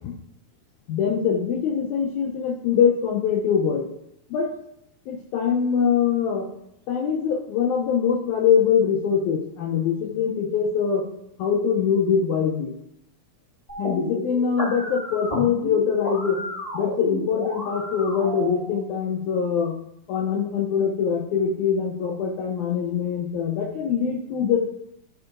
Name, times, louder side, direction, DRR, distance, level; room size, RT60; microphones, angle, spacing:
voice 1, 0.9-3.9 4.3-4.5 5.1-6.5 6.9-11.0 11.4-12.7 13.8-16.4 16.7-19.7 20.1-24.6, left 7 dB, 80° left, -1 dB, 1.7 m, -23 dB
sound 1, 13.7-18.7, equal, 35° left, 0.5 m, -32 dB
11.5 x 4.4 x 2.5 m, 0.78 s
omnidirectional pair, 4.1 m